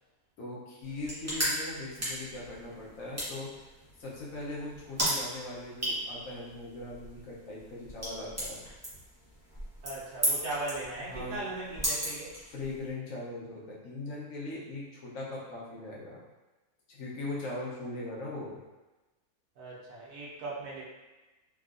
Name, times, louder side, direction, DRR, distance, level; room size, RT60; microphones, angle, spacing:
voice 1, 0.4-3.7 4.0-8.6 11.0-11.3 12.5-16.2 16.9-18.6, left 2 dB, 65° left, -5 dB, 1.2 m, -40 dB
sound 1, 0.8-12.9, equal, 15° right, 0.5 m, -36 dB
voice 2, 9.8-12.3 19.6-20.8, right 2 dB, 90° right, -5 dB, 1.3 m, -38 dB
3.5 x 2.4 x 2.4 m, 1.1 s
omnidirectional pair, 1.6 m